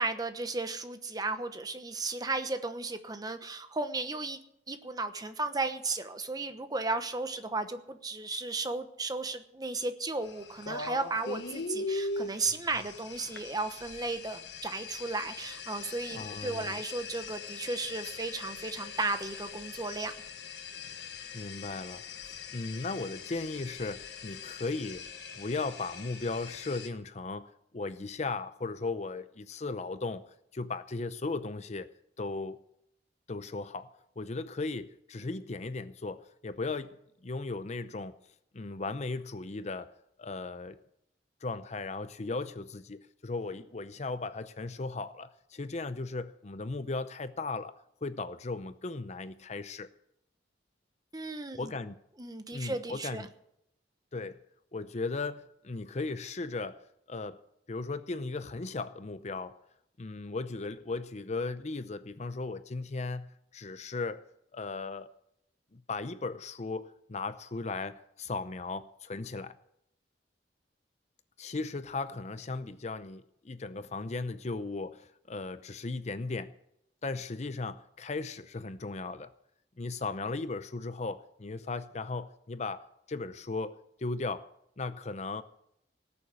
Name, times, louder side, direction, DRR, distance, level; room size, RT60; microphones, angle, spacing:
voice 1, 0.0-4.4 4.7-20.1 51.1-51.7 52.2-53.3, right 3 dB, 20° right, 1.0 m, -34 dB
sound 1, 10.2-26.9, left 4 dB, 70° left, 1.5 m, -41 dB
voice 2, 16.1-16.8 21.3-25.1 25.3-30.2 30.5-31.9 32.2-32.6 33.3-37.0 37.2-38.2 38.5-39.9 40.2-40.8 41.4-47.7 48.0-49.9 51.6-51.9 52.5-53.3 54.1-54.4 54.7-56.8 57.1-57.4 57.7-59.6 60.0-64.2 64.5-65.1 65.7-69.6 71.4-76.5 77.0-79.3 79.8-84.5 84.8-85.4, left 3 dB, 40° left, 0.6 m, -37 dB
18.5 x 7.1 x 8.2 m
head